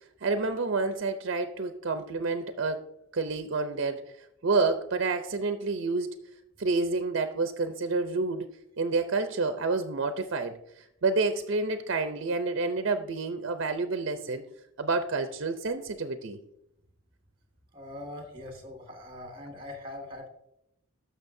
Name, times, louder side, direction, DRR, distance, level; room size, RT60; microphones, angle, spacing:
voice 1, 0.2-2.9 3.1-4.1 4.4-6.1 6.6-8.5 8.8-14.4 14.8-16.4, right 3 dB, 60° right, 8 dB, 0.5 m, -29 dB
voice 2, 17.7-20.3, left 1 dB, 25° right, 2 dB, 1.7 m, -42 dB
12.0 x 6.5 x 2.6 m, 0.80 s
head